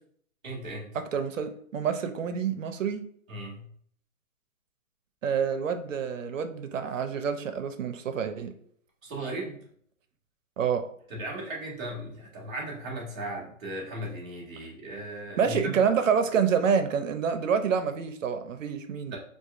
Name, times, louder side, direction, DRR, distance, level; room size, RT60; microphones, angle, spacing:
voice 1, 0.4-1.0 3.3-3.7 9.0-9.6 11.1-15.8 19.1-19.2, right 1 dB, 5° right, -17 dB, 0.4 m, -37 dB
voice 2, 0.9-3.0 5.2-8.5 10.6-10.8 15.4-19.2, right 7 dB, 70° right, 8 dB, 0.6 m, -27 dB
4.6 x 2.5 x 2.4 m, 0.62 s
hypercardioid pair, 160°, 41 cm